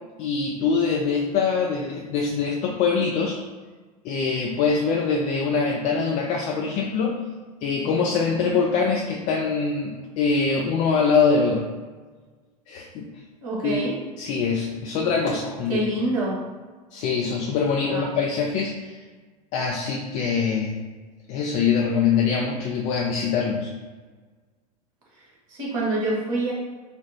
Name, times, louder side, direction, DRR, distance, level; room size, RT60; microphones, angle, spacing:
voice 1, 0.2-3.4 4.0-7.2 7.6-11.7 12.7-13.1 13.6-13.8 14.2-15.8 16.9-19.0 19.5-20.8 21.3-23.7, left 5 dB, 40° left, -1 dB, 0.4 m, -23 dB
voice 2, 13.4-14.0 15.7-16.4 17.8-18.2 25.2-26.5, right 2 dB, 55° right, -5 dB, 1.3 m, -27 dB
4.2 x 2.0 x 2.7 m, 1.4 s
figure-of-eight pair, 85°, 20 cm